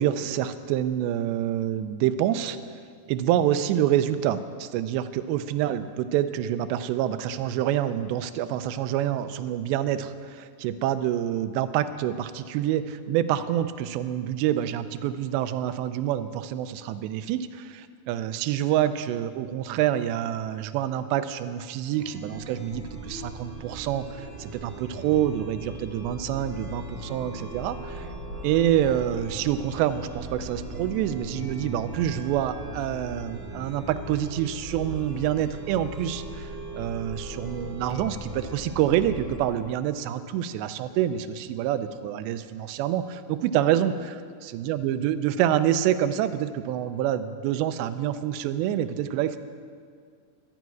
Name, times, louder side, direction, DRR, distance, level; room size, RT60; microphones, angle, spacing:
voice 1, 0.0-2.6 3.1-28.1 28.4-43.9 44.5-49.4, right 11 dB, 85° right, 11 dB, 2.9 m, -27 dB
Chime, 21.9-39.4, right 1 dB, 25° right, 1.9 m, -38 dB
12.5 x 11.0 x 9.4 m, 2.1 s
omnidirectional pair, 5.0 m